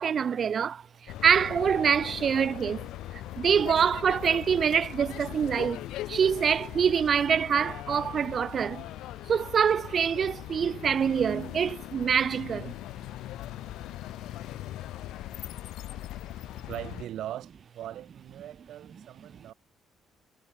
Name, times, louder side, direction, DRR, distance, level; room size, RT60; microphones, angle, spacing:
voice 1, 0.0-2.9 3.1-8.9 9.3-12.7, right 7 dB, 35° right, 0.4 m, -25 dB
sound 1, 1.1-17.1, left 15 dB, 85° left, 1.2 m, -40 dB
voice 2, 16.7-19.5, right 12 dB, 65° right, 7.7 m, -40 dB
cardioid pair, 165°, 0 cm